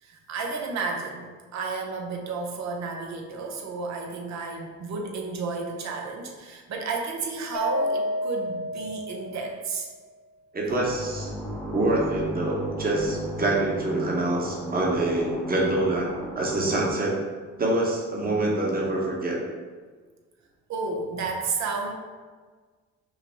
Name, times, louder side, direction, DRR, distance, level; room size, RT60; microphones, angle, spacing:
voice 1, 0.0-1.3 1.5-9.9 20.7-21.9, right 4 dB, 65° right, 1 dB, 0.7 m, -32 dB
Mallet percussion, 7.5-9.8, left 1 dB, 30° left, 0.4 m, -30 dB
voice 2, 10.5-11.3 11.7-16.1 16.3-17.1 17.6-19.4, right 2 dB, 30° right, -3 dB, 1.0 m, -25 dB
sound 1, 10.7-16.9, right 1 dB, ahead, 0.9 m, -35 dB
5.5 x 2.0 x 3.4 m, 1.5 s
cardioid pair, 90°, 30 cm